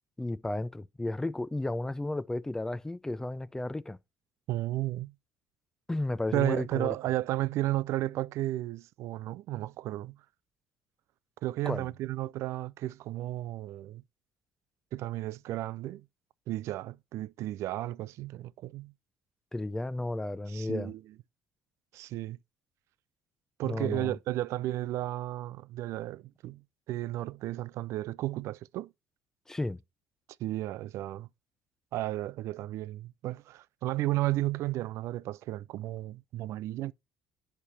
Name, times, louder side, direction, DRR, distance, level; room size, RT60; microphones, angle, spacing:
voice 1, 0.2-4.0 5.9-6.9 11.7-11.9 19.5-20.9 23.6-24.1 29.5-29.8, left 2 dB, 10° left, 0.5 m, -33 dB
voice 2, 4.5-5.1 6.3-10.2 11.4-14.0 14.9-16.0 16.5-18.9 20.5-21.0 21.9-22.4 23.6-26.6 26.9-28.9 30.4-31.3 31.9-36.9, right 16 dB, 65° right, 0.3 m, -33 dB
10.0 x 3.4 x 4.1 m
supercardioid pair, 95°, 5 cm